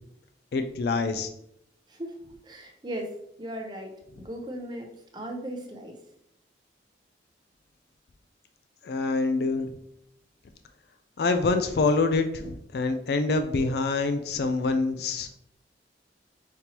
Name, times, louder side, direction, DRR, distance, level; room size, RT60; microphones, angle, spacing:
voice 1, 0.5-1.3 8.8-9.7 11.2-15.4, left 3 dB, 60° left, 8 dB, 0.3 m, -26 dB
voice 2, 2.4-6.0, right 1 dB, 25° right, 1 dB, 0.6 m, -37 dB
5.2 x 2.9 x 2.9 m, 0.75 s
head